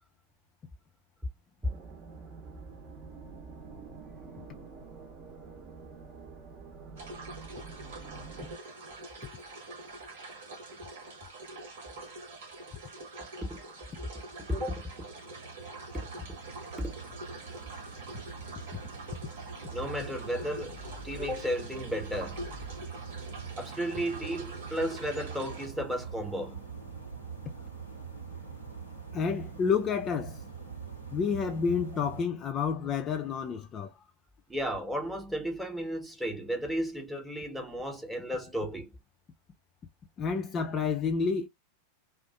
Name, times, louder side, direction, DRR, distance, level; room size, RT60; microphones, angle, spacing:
sound 1, 1.6-8.6, right 4 dB, 35° right, 0.8 m, -47 dB
sound 2, 7.0-25.7, right 2 dB, 60° right, 1.0 m, -45 dB
sound 3, 14.1-32.2, right 6 dB, 90° right, 1.1 m, -44 dB
voice 1, 14.5-14.8 16.8-16.9 19.7-22.5 23.6-26.6 34.5-38.9, equal, 5° right, 0.8 m, -34 dB
voice 2, 29.1-30.4 31.1-34.0 40.2-41.5, left 6 dB, 25° left, 0.3 m, -29 dB
2.5 x 2.4 x 2.2 m
figure-of-eight pair, 90°, 0 cm